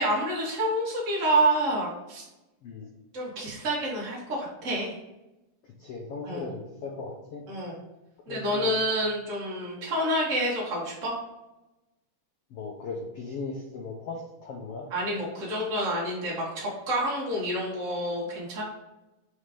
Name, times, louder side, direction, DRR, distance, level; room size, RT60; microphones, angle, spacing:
voice 1, 0.0-2.2 3.1-4.9 6.2-6.4 7.5-7.8 8.3-11.1 14.9-18.6, right 1 dB, 45° right, -5 dB, 1.0 m, -28 dB
voice 2, 5.8-7.5 8.3-8.8 12.5-14.9, left 4 dB, 80° left, 0 dB, 1.3 m, -38 dB
4.9 x 4.2 x 5.1 m, 0.97 s
omnidirectional pair, 3.7 m